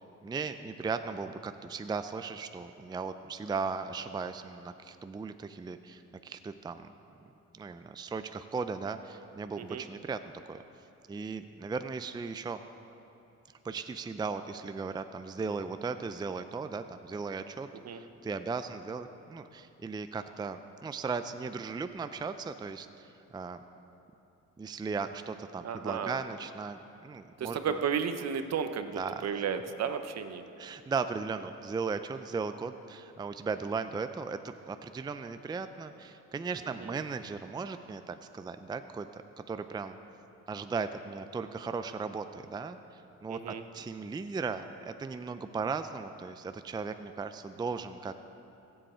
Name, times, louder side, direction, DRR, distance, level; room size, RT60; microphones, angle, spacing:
voice 1, 0.0-6.9 7.5-10.2 10.5-10.6 11.1-12.6 13.6-23.6 24.6-27.6 28.9-29.4 30.6-34.4 34.7-40.0 40.5-48.1, right 4 dB, 15° right, 9 dB, 0.4 m, -37 dB
voice 2, 25.6-26.1 27.4-30.4 36.8-36.9 43.3-43.6, right 7 dB, 60° right, 8 dB, 0.9 m, -33 dB
21.0 x 7.9 x 4.4 m, 2.8 s
cardioid pair, 90°, 30 cm